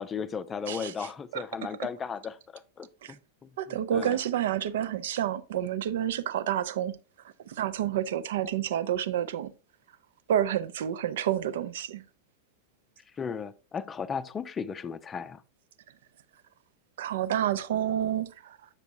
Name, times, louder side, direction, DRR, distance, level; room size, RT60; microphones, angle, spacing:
voice 1, 0.0-2.4 2.8-4.2 13.2-15.4, left 6 dB, 20° left, 0.5 m, -36 dB
voice 2, 0.7-1.4 1.8-1.9 3.0-3.2 3.6-7.0 7.5-9.5 10.3-12.0 17.0-18.6, right 10 dB, 55° right, 0.5 m, -29 dB
8.2 x 6.9 x 2.7 m
figure-of-eight pair, 90°, 0 cm